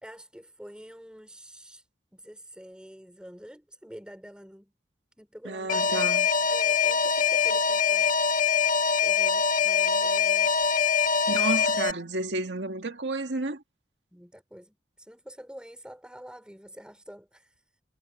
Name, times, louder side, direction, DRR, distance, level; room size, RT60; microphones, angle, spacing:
voice 1, 0.0-1.9 2.1-4.7 5.2-6.1 6.4-8.1 9.0-10.5 14.1-17.6, equal, 5° right, 5.1 m, -47 dB
voice 2, 5.4-6.3 11.3-13.6, right 2 dB, 85° right, 2.0 m, -31 dB
Alarm, 5.7-11.9, left 6 dB, 50° left, 1.6 m, -23 dB
head